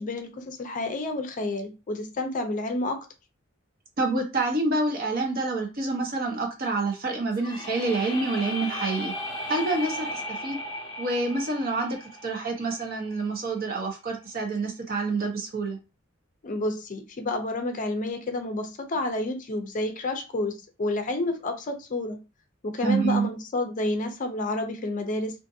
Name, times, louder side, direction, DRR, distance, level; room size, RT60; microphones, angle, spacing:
voice 1, 0.0-3.0 16.4-20.5 20.8-22.2 22.6-25.3, left 2 dB, 40° left, 5 dB, 0.5 m, -29 dB
voice 2, 4.0-9.1 9.5-10.6 11.0-12.0 12.2-15.8 22.8-23.3, right 3 dB, 45° right, 2 dB, 0.7 m, -27 dB
sound 1, 7.3-13.2, left 1 dB, 25° left, 0.9 m, -36 dB
2.5 x 2.5 x 2.6 m, 0.30 s
head